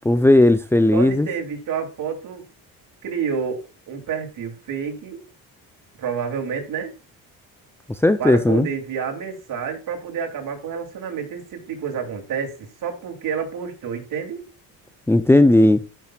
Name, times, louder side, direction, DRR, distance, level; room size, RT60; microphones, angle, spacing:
voice 1, 0.1-1.3 8.0-8.7 15.1-15.8, left 1 dB, 5° left, 0.6 m, -15 dB
voice 2, 0.9-2.4 3.0-5.2 6.0-6.9 8.2-12.5 12.8-14.5, right 6 dB, 60° right, 2.8 m, -29 dB
14.0 x 6.2 x 2.4 m
cardioid pair, 85°, 35 cm